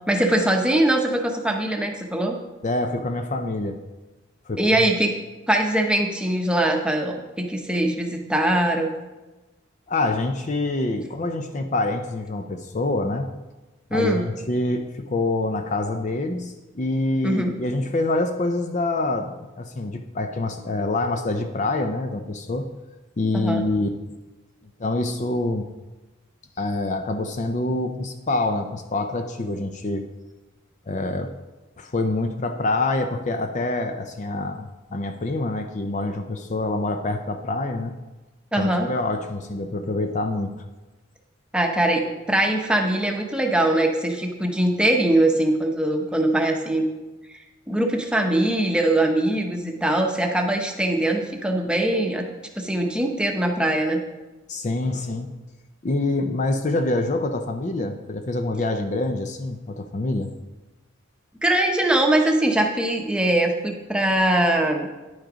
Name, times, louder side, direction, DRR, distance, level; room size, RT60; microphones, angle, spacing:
voice 1, 0.1-2.4 4.6-5.2 5.5-8.9 13.9-14.2 17.2-17.5 23.3-23.6 38.5-38.9 41.5-46.9 47.7-52.2 52.6-54.0 61.4-64.9, right 1 dB, 5° right, 2 dB, 0.8 m, -22 dB
voice 2, 2.6-3.8 4.5-4.9 9.9-13.3 13.9-22.7 23.2-23.9 24.8-25.7 26.6-30.0 30.9-31.3 31.8-37.9 38.6-40.5 54.5-55.3 55.8-60.3, left 2 dB, 35° left, 6 dB, 0.5 m, -26 dB
10.0 x 6.4 x 5.0 m, 1.1 s
head